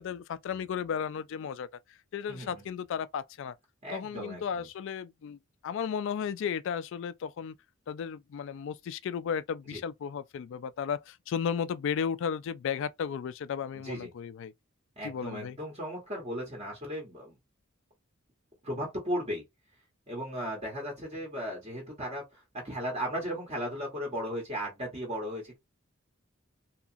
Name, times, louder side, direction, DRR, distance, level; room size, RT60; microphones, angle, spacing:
voice 1, 0.0-1.7 2.1-3.5 3.9-5.4 5.6-7.6 7.9-14.5 15.0-15.6, left 7 dB, 65° left, 0.3 m, -34 dB
voice 2, 2.3-2.6 3.8-4.7 9.7-9.8 13.7-14.1 15.0-17.4 18.6-19.4 20.1-25.6, equal, 30° right, 1.0 m, -36 dB
2.8 x 2.4 x 2.5 m
head